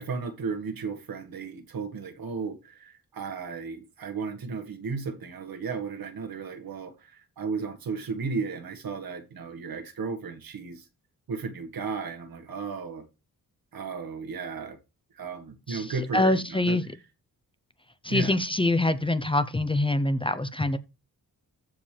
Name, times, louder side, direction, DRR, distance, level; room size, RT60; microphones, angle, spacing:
voice 1, 0.0-10.9 11.3-13.0 13.7-14.8 15.2-16.8 18.1-18.4, right 4 dB, 70° right, 1.9 m, -34 dB
voice 2, 15.7-16.9 18.0-20.8, left 2 dB, 15° left, 0.8 m, -25 dB
14.0 x 5.3 x 3.4 m
wide cardioid pair, 100°, 36 cm